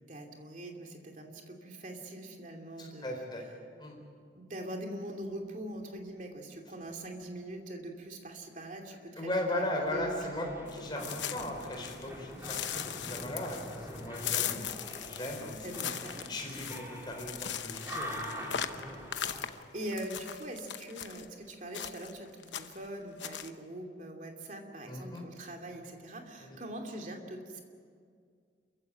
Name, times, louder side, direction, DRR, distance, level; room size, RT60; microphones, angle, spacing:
voice 1, 0.1-3.3 4.3-10.8 14.4-14.6 15.6-16.3 19.1-19.4 19.7-27.6, right 1 dB, 45° right, 2 dB, 2.7 m, -43 dB
voice 2, 2.8-3.4 3.8-4.0 9.2-12.6 12.9-14.7 15.1-15.9 16.3-18.3 18.7-19.0 24.9-25.2 26.4-26.6, left 1 dB, 25° left, 1 dB, 4.4 m, -37 dB
sound 1, 9.8-19.5, equal, 15° right, 3.6 m, -45 dB
sound 2, 10.7-12.1 12.4-21.3 21.7-22.2 22.4-22.9 23.2-23.5, left 10 dB, 85° left, 0.9 m, -39 dB
27.5 x 15.5 x 8.9 m, 2.1 s
head